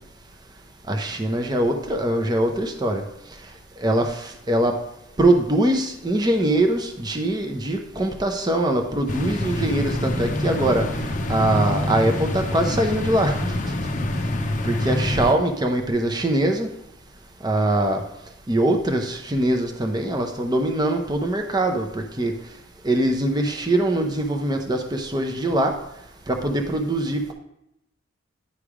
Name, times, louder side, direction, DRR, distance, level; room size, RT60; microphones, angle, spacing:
voice 1, 0.9-3.0 3.8-4.7 5.2-10.8 11.3-13.4 14.6-16.7 17.4-18.0 18.5-22.3 22.8-25.7 26.3-27.3, right 1 dB, 20° right, 4 dB, 0.6 m, -22 dB
sound 1, 9.1-15.3, left 1 dB, 40° left, 0.6 m, -26 dB
9.9 x 3.3 x 4.8 m, 0.85 s
head